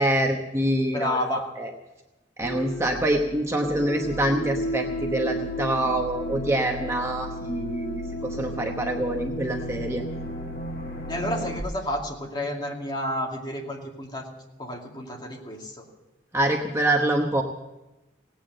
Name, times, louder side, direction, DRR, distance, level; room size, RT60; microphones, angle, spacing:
voice 1, 0.0-1.2 1.6-1.7 2.4-10.0 16.3-17.4, right 1 dB, 15° right, 2 dB, 0.9 m, -25 dB
voice 2, 0.9-1.4 11.1-14.3 14.6-15.9, left 1 dB, 25° left, 0 dB, 2.3 m, -30 dB
sound 1, 2.4-11.6, equal, 55° left, 1.5 m, -33 dB
17.5 x 8.9 x 7.6 m, 1.0 s
head